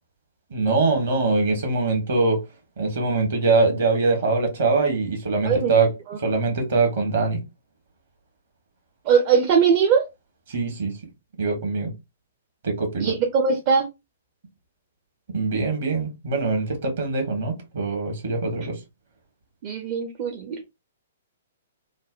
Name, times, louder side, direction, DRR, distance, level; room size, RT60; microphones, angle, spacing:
voice 1, 0.5-2.4 2.8-5.9 6.2-7.4 10.5-10.9 11.4-11.9 12.6-13.1 15.3-18.8, right 3 dB, 55° right, 1.2 m, -23 dB
voice 2, 5.4-5.8 6.1-6.2 9.1-10.1 13.0-13.9 19.6-20.6, right 6 dB, 35° right, 0.5 m, -20 dB
3.3 x 2.1 x 2.4 m
figure-of-eight pair, 115°, 0 cm